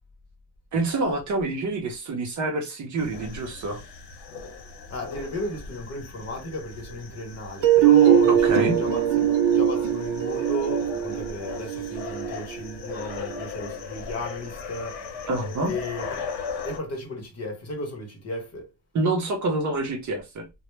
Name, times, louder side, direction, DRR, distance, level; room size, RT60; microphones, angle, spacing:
voice 1, 0.7-3.8 8.3-8.7 15.3-15.7 18.9-20.4, right 2 dB, 40° right, 0.6 m, -27 dB
sound 1, 3.0-16.8, left 5 dB, 75° left, 1.1 m, -38 dB
voice 2, 4.9-15.3 15.6-16.3 16.6-18.7, left 1 dB, 35° left, 0.8 m, -34 dB
sound 2, 7.6-13.4, right 10 dB, 70° right, 0.7 m, -21 dB
2.1 x 2.0 x 3.0 m
cardioid pair, 170°, 45 cm